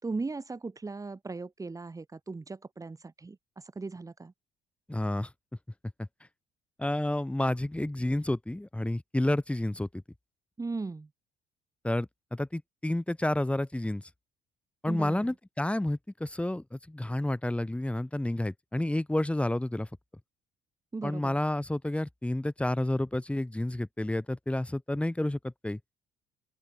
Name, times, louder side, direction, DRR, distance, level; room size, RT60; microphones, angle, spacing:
voice 1, 0.0-4.3 10.6-11.1 14.9-15.3 20.9-21.4, right 3 dB, 20° right, 4.4 m, -38 dB
voice 2, 4.9-5.3 6.8-9.9 11.8-14.0 14.8-19.9 21.0-25.8, left 1 dB, 5° left, 7.8 m, -30 dB
open air
cardioid pair, 110°, 17 cm